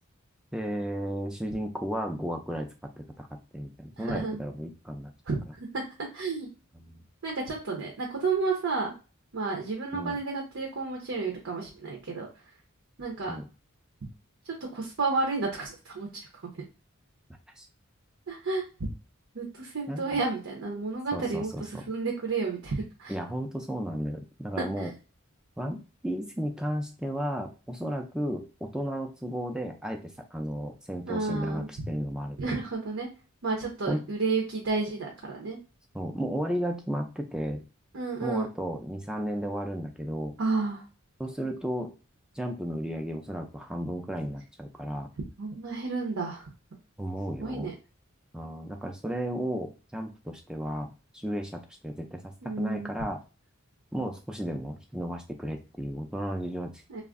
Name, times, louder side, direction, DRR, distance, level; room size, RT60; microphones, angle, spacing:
voice 1, 0.5-5.1 6.9-7.0 9.9-10.2 13.3-13.5 17.6-17.7 19.9-20.2 21.1-21.8 23.1-24.9 25.6-32.6 33.9-34.0 35.9-37.6 38.2-40.4 41.2-41.9 42.3-45.1 47.0-47.7 48.3-53.2 53.9-57.0, equal, 5° right, 3 dB, 0.3 m, -34 dB
voice 2, 4.0-4.4 5.3-5.4 5.7-5.8 6.1-6.5 7.2-8.9 9.3-12.3 13.0-13.4 14.4-16.3 16.5-16.6 18.3-18.6 19.3-23.1 24.6-24.9 31.0-31.7 32.4-33.1 33.4-35.6 37.9-38.5 40.4-40.8 45.4-46.5 47.4-47.7 52.4-52.9 56.9-57.0, right 4 dB, 80° right, -1 dB, 0.7 m, -31 dB
2.4 x 2.0 x 3.5 m, 0.33 s
head